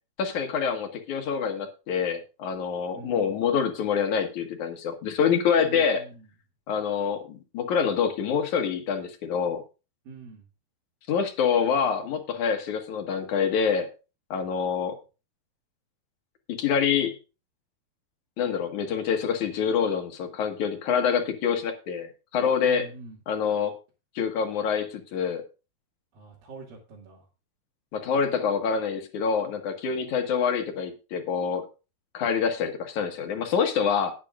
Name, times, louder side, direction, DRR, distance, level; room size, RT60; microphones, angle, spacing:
voice 1, 0.2-6.0 6.7-9.6 11.1-13.9 14.3-15.0 16.5-17.2 18.4-22.9 23.3-23.7 24.2-25.4 27.9-31.7 32.1-34.1, left 6 dB, 60° left, 5 dB, 2.9 m, -26 dB
voice 2, 2.9-3.4 5.6-6.3 10.0-10.5 22.6-23.2 26.1-27.3, right 3 dB, 75° right, -5 dB, 4.5 m, -44 dB
19.5 x 8.6 x 2.5 m, 0.30 s
omnidirectional pair, 4.1 m